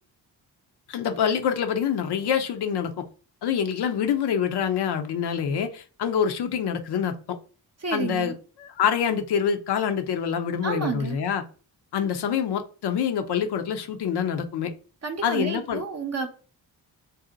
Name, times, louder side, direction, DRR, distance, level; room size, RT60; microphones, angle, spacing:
voice 1, 0.9-3.0 3.4-7.4 7.9-8.3 8.6-11.4 11.9-14.7 15.2-15.9, left 8 dB, 65° left, 7 dB, 0.6 m, -26 dB
voice 2, 7.8-8.3 10.6-11.2 15.0-16.3, right 4 dB, 35° right, 3 dB, 0.6 m, -30 dB
2.7 x 2.1 x 3.8 m, 0.37 s
supercardioid pair, 45°, 44 cm